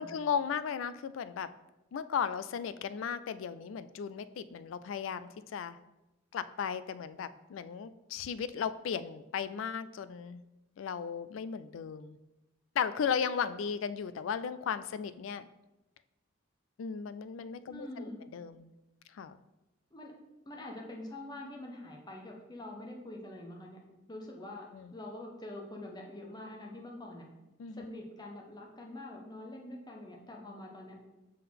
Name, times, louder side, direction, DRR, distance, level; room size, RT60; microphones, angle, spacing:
voice 1, 0.0-1.5 1.9-5.8 6.3-10.4 10.8-12.2 12.8-15.5 16.8-18.7 19.1-19.4 24.7-24.9 27.6-27.8, left 7 dB, 80° left, 14 dB, 0.3 m, -36 dB
voice 2, 17.7-18.2 19.9-20.1 20.5-23.8 24.1-27.2 27.7-30.9, left 1 dB, 20° left, 0 dB, 1.0 m, -45 dB
5.5 x 3.8 x 5.8 m, 0.98 s
head